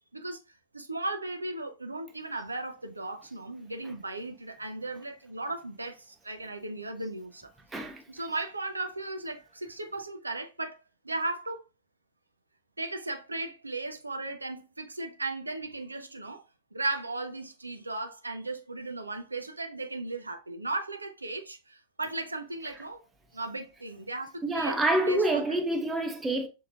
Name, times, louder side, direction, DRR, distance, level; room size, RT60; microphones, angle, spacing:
voice 1, 0.7-7.5 8.1-11.6 12.8-16.4 16.7-23.0 23.3-25.4, right 2 dB, 80° right, 0.6 m, -36 dB
voice 2, 7.7-8.0 24.4-26.5, right 1 dB, 10° right, 0.8 m, -27 dB
6.2 x 2.8 x 2.3 m
figure-of-eight pair, 90°, 0 cm